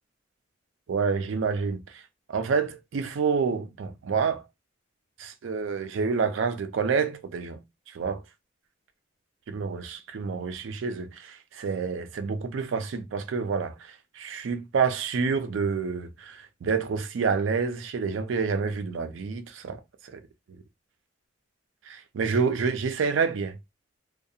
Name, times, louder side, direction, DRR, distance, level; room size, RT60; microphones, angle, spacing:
voice 1, 0.9-2.0 2.3-4.4 5.2-7.6 7.9-8.2 9.5-19.8 20.1-20.2 21.9-23.6, right 5 dB, 75° right, 0.4 m, -28 dB
2.7 x 2.2 x 2.3 m
head